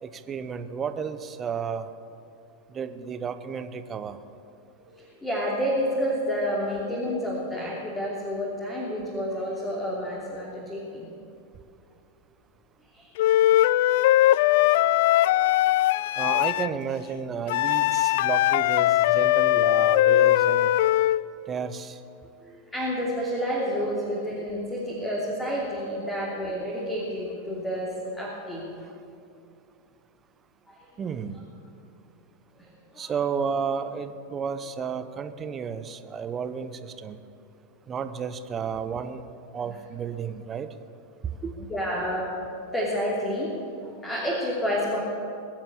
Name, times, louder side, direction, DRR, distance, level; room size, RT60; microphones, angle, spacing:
voice 1, 0.0-1.9 2.7-4.2 16.2-20.7 21.5-22.0 31.0-31.4 33.0-37.2 37.9-39.2 39.5-40.7 41.4-41.5, right 6 dB, 25° right, 10 dB, 0.9 m, -32 dB
voice 2, 4.9-11.1 12.9-13.1 14.7-14.9 22.4-28.7 30.7-30.9 32.9-33.1 41.6-42.3 42.7-43.5 43.8-45.0, equal, 15° left, -4 dB, 2.9 m, -29 dB
Wind instrument woodwind instrument, 13.2-16.7 17.5-21.2, left 14 dB, 50° left, 0.3 m, -20 dB
22.5 x 7.5 x 8.5 m, 2.6 s
figure-of-eight pair, 90°, 0 cm